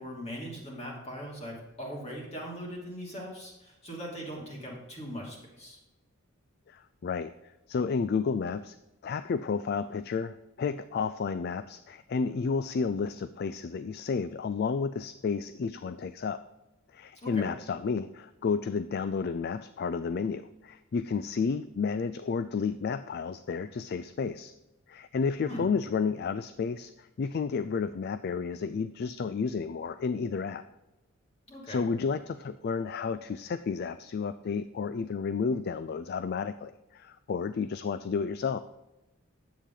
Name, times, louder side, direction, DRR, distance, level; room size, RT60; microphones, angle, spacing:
voice 1, 0.0-5.8 17.2-17.5 25.4-25.7 31.5-31.9, equal, 30° left, -3 dB, 2.8 m, -40 dB
voice 2, 6.7-7.3 7.7-8.8 9.0-16.4 16.9-24.5 24.9-30.6 31.7-38.6, left 5 dB, 45° left, 12 dB, 0.3 m, -31 dB
10.0 x 8.3 x 3.9 m, 0.98 s
head